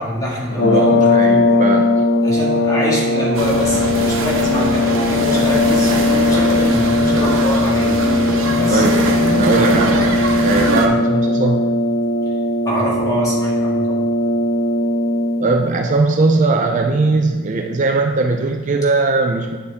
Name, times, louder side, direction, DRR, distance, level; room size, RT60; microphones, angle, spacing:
voice 1, 0.0-1.8 2.2-8.0 8.5-8.9 12.3-12.4 12.6-14.1, equal, 15° left, -4 dB, 1.8 m, -25 dB
sound 1, 0.5-15.6, left 2 dB, 45° left, 0.5 m, -18 dB
voice 2, 0.6-1.9 8.7-11.7 15.4-19.6, right 3 dB, 35° right, 3 dB, 0.5 m, -19 dB
sound 2, 3.3-10.9, right 2 dB, 70° right, 1.1 m, -22 dB
8.9 x 6.8 x 3.5 m, 1.4 s
head